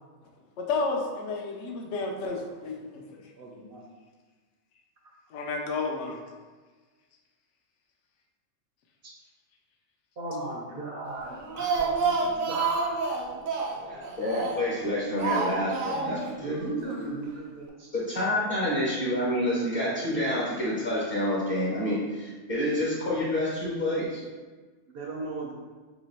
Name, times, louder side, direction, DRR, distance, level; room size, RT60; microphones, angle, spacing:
voice 1, 0.6-3.2 5.3-6.2, left 3 dB, 65° left, 1 dB, 0.8 m, -31 dB
voice 2, 3.4-3.8 9.0-9.1 10.2-13.0 16.4-17.9 24.9-25.5, right 2 dB, 55° right, -3 dB, 0.7 m, -36 dB
Speech, 11.3-14.8 15.2-16.3 16.6-16.7 17.0-17.1, right 4 dB, 80° right, 1.0 m, -29 dB
voice 3, 13.8-16.5 17.9-24.2, left 1 dB, 30° left, -7 dB, 0.9 m, -28 dB
2.9 x 2.9 x 4.1 m, 1.4 s
omnidirectional pair, 1.4 m